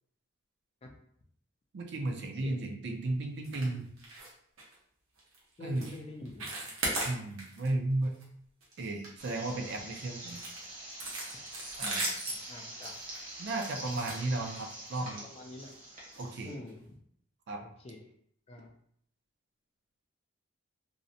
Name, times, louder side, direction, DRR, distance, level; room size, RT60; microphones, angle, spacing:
voice 1, 1.7-3.8 5.6-5.9 7.0-8.2 8.8-10.4 11.8-12.1 13.4-15.2 16.2-16.5 17.5-17.6, right 2 dB, 55° right, 3 dB, 0.4 m, -34 dB
sound 1, 3.4-3.7 4.0-4.3 4.6-4.7 5.2-5.4 5.7-6.0 6.2-7.7 8.0-8.2 8.6-9.7 10.3-14.9 15.6-15.8 16.1-16.2 16.7-16.8, right 2 dB, 75° right, 0.8 m, -38 dB
voice 2, 5.6-6.5 12.3-13.0 15.0-15.7 16.4-16.9 17.6-18.1 18.5-18.7, left 2 dB, 30° left, 2 dB, 0.3 m, -46 dB
sound 2, 9.2-16.5, right 1 dB, 40° right, 0.8 m, -45 dB
2.6 x 2.1 x 2.6 m, 0.67 s
head